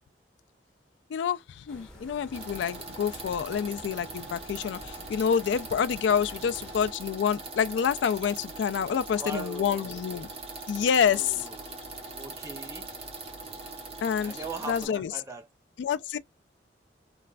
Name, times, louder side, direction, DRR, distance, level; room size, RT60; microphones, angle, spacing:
voice 1, 1.1-10.3 10.7-11.5 14.0-15.1 15.8-16.2, left 7 dB, 85° left, 0.3 m, -28 dB
sound 1, 1.7-6.9, equal, 5° left, 1.2 m, -49 dB
sound 2, 2.3-14.9, right 3 dB, 35° right, 0.9 m, -41 dB
voice 2, 9.1-10.0 11.1-11.7 12.2-12.9 14.2-15.5, right 3 dB, 15° right, 0.4 m, -40 dB
3.1 x 2.4 x 2.2 m
head